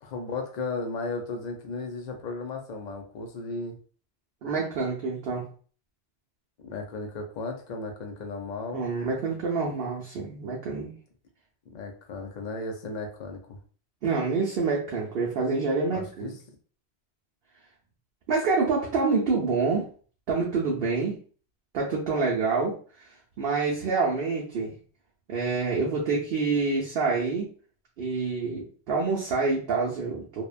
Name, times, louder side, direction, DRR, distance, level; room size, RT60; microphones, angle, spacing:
voice 1, 0.0-3.8 6.6-8.9 11.7-13.6 15.9-16.3, left 3 dB, 50° left, 2 dB, 0.5 m, -35 dB
voice 2, 4.4-5.5 8.7-10.9 14.0-16.3 18.3-19.9 20.3-21.2 21.7-23.1 23.4-24.7 25.3-27.5 28.0-30.4, right 4 dB, 65° right, -2 dB, 0.7 m, -27 dB
2.8 x 2.1 x 2.4 m, 0.42 s
omnidirectional pair, 1.2 m